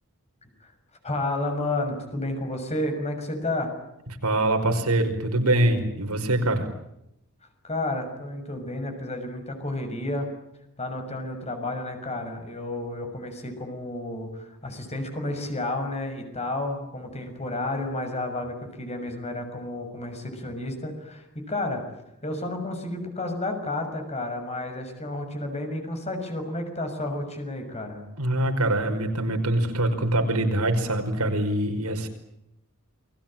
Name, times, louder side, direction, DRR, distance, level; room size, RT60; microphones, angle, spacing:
voice 1, 1.0-3.7 7.6-10.3 10.8-21.8 22.2-28.0, left 2 dB, 30° left, 6 dB, 6.5 m, -31 dB
voice 2, 4.2-6.7 28.2-32.1, right 1 dB, 80° right, 5 dB, 5.3 m, -24 dB
29.5 x 22.0 x 9.0 m, 0.82 s
head